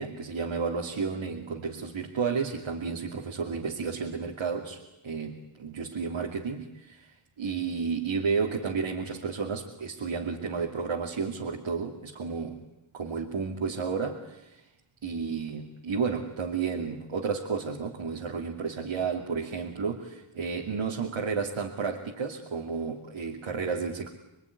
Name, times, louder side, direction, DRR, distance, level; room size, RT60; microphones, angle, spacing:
voice 1, 0.0-7.1 7.4-12.7 12.9-14.7 15.0-24.1, right 5 dB, 85° right, 0 dB, 2.7 m, -32 dB
27.5 x 22.0 x 9.8 m, 0.93 s
wide cardioid pair, 90°, 48 cm